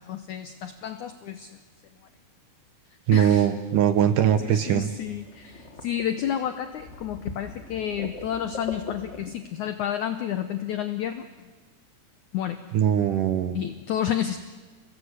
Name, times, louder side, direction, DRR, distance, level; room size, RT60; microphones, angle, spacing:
voice 1, 0.1-1.5 3.1-3.5 4.4-11.3 12.3-12.6 13.6-14.4, left 10 dB, 85° left, 8 dB, 1.7 m, -30 dB
voice 2, 3.1-4.9 12.7-13.6, right 9 dB, 70° right, 10 dB, 2.1 m, -21 dB
sound 1, 4.1-9.3, left 3 dB, 40° left, 1.0 m, -41 dB
28.5 x 19.0 x 8.2 m, 1.4 s
omnidirectional pair, 4.7 m